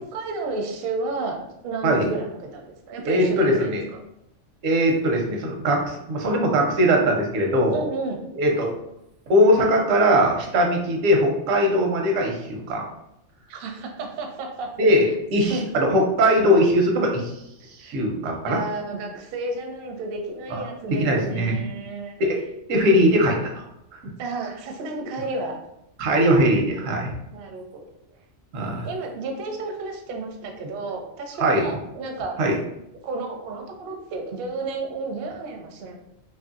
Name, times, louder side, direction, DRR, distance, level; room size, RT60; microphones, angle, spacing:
voice 1, 0.0-1.4 1.6-3.8 7.7-8.2 13.5-14.7 15.4-15.6 17.8-18.0 18.5-22.2 24.2-25.6 27.3-27.9 28.8-32.4 33.0-36.0, right 3 dB, 60° right, 2 dB, 0.6 m, -32 dB
voice 2, 3.1-3.8 4.6-7.8 8.4-8.7 9.3-12.8 14.8-17.3 17.8-18.6 20.5-21.6 22.2-22.4 22.7-23.6 26.0-27.1 28.5-28.9 31.4-31.6 32.4-32.6, equal, 85° right, 1 dB, 1.0 m, -20 dB
2.9 x 2.5 x 2.4 m, 0.82 s
omnidirectional pair, 1.3 m